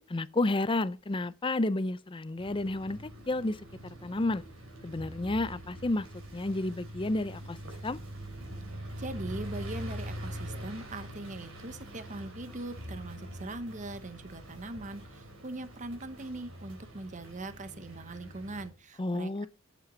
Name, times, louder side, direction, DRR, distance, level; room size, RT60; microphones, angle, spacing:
voice 1, 0.0-3.6 4.0-4.4 4.8-6.1 6.3-7.6 7.8-8.0 19.0-19.5, left 2 dB, 25° left, 0.5 m, -31 dB
sound 1, 2.4-18.7, equal, 70° right, 4.0 m, -44 dB
voice 2, 9.0-19.5, right 2 dB, 35° right, 1.0 m, -41 dB
11.0 x 8.4 x 3.9 m
head